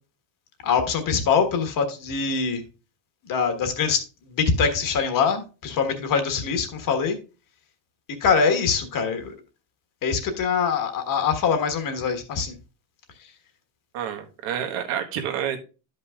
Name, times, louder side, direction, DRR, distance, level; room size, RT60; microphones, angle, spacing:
voice 1, 0.6-2.6 3.3-4.0 4.3-7.2 8.2-9.3 10.0-12.5, left 6 dB, 45° left, 7 dB, 1.4 m, -23 dB
voice 2, 13.9-15.6, right 9 dB, 80° right, 5 dB, 1.4 m, -29 dB
13.0 x 5.5 x 2.4 m, 0.32 s
cardioid pair, 160°, 46 cm